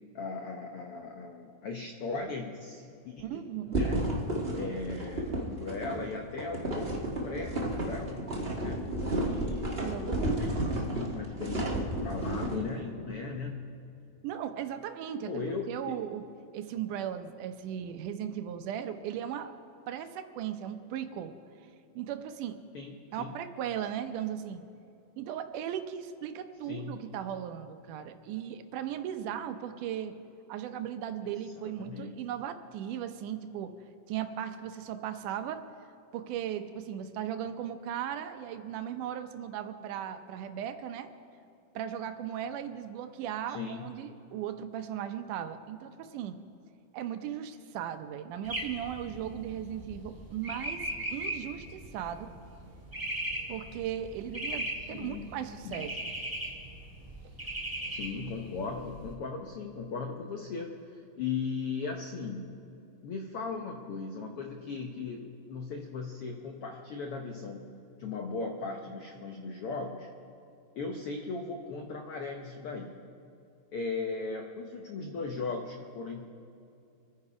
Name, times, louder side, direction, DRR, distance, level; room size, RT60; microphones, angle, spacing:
voice 1, 0.1-3.4 3.8-4.1 4.5-8.3 8.6-8.8 9.2-11.6 12.0-13.7 15.2-15.8 22.7-23.3 26.7-27.0 31.2-31.3 31.5-32.2 43.5-43.9 54.9-55.3 55.6-55.9 57.9-62.5 63.0-67.7 68.0-70.1 70.7-73.0 73.7-76.3, left 4 dB, 75° left, 3 dB, 1.3 m, -38 dB
voice 2, 3.2-3.8 9.8-10.4 14.2-15.4 15.7-16.2 16.5-19.5 19.9-21.3 22.0-22.6 23.1-24.6 25.2-30.1 30.5-33.7 34.1-35.6 36.1-41.1 41.8-46.4 46.9-52.3 53.5-56.1, right 10 dB, 80° right, 9 dB, 2.2 m, -37 dB
sound 1, 3.7-12.6, right 1 dB, 40° right, 0.8 m, -32 dB
sound 2, 48.4-59.1, right 1 dB, 10° right, 1.1 m, -38 dB
25.5 x 9.8 x 4.9 m, 2.6 s
omnidirectional pair, 3.8 m